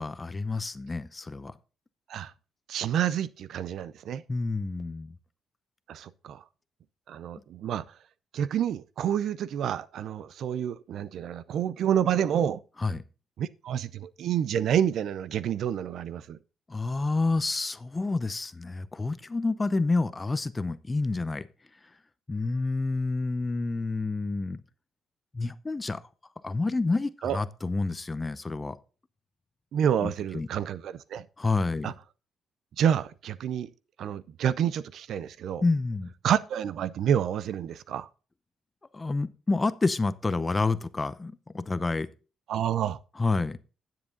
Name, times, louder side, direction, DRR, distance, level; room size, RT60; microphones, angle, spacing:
voice 1, 0.0-1.5 4.3-5.1 12.8-13.0 16.7-21.4 22.3-24.6 25.3-26.0 26.4-28.8 30.0-30.5 31.4-31.9 35.6-36.1 38.9-42.1 43.2-43.6, left 3 dB, 20° left, 0.6 m, -29 dB
voice 2, 2.7-4.2 5.9-6.4 7.1-7.8 8.3-12.6 13.4-16.4 27.2-27.4 29.7-31.3 31.8-31.9 32.8-33.7 34.0-35.6 36.2-38.1 42.5-43.0, right 9 dB, 70° right, 0.5 m, -28 dB
9.7 x 7.7 x 3.8 m
cardioid pair, 90°, 0 cm